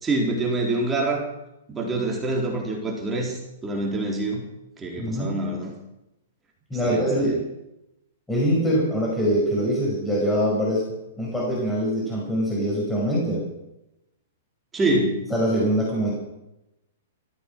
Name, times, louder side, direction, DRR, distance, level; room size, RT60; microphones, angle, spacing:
voice 1, 0.0-1.2 1.7-4.4 4.8-5.7 6.8-7.4 14.7-15.3, right 2 dB, 15° right, -1 dB, 4.0 m, -26 dB
voice 2, 5.0-5.3 6.7-7.4 8.3-13.4 15.3-16.1, equal, 5° left, -5 dB, 5.4 m, -23 dB
15.0 x 13.5 x 6.2 m, 0.89 s
hypercardioid pair, 140°, 0 cm